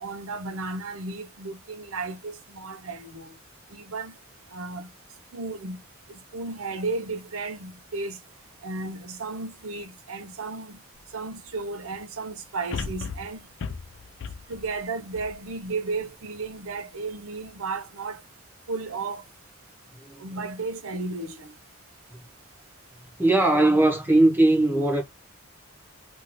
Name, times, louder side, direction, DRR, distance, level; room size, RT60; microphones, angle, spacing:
voice 1, 0.0-3.4 3.7-4.1 4.5-4.9 5.3-5.8 6.1-8.2 8.6-10.8 11.1-13.4 14.5-18.2 18.7-19.2 20.2-21.5, right 3 dB, 80° right, 0.7 m, -34 dB
sound 1, 11.0-11.1 12.7-16.0 16.5-16.6, left 5 dB, 55° left, 0.4 m, -36 dB
voice 2, 23.2-25.0, right 2 dB, 10° right, 0.8 m, -20 dB
2.6 x 2.6 x 3.0 m
head